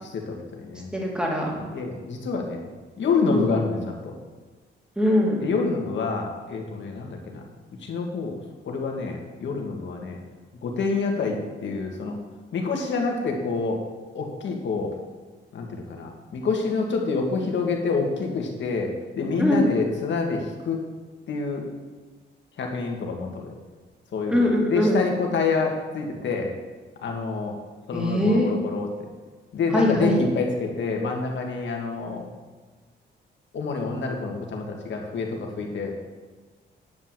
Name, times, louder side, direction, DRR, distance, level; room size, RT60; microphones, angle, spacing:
voice 1, 0.1-0.9 1.7-2.7 3.0-4.2 5.4-7.5 7.8-8.4 8.7-10.2 10.6-12.2 12.5-13.8 14.1-14.9 15.5-18.9 19.1-20.8 21.3-21.7 22.6-23.5 24.1-24.4 24.7-26.5 27.0-27.5 27.9-28.9 29.5-32.3 33.5-35.9, left 4 dB, 70° left, 1 dB, 1.9 m, -27 dB
voice 2, 0.9-1.6 3.3-3.5 5.0-5.4 19.4-19.7 24.3-25.0 27.9-28.5 29.7-30.2, equal, 5° right, -2 dB, 2.3 m, -22 dB
9.4 x 5.7 x 7.6 m, 1.4 s
cardioid pair, 100°, 20 cm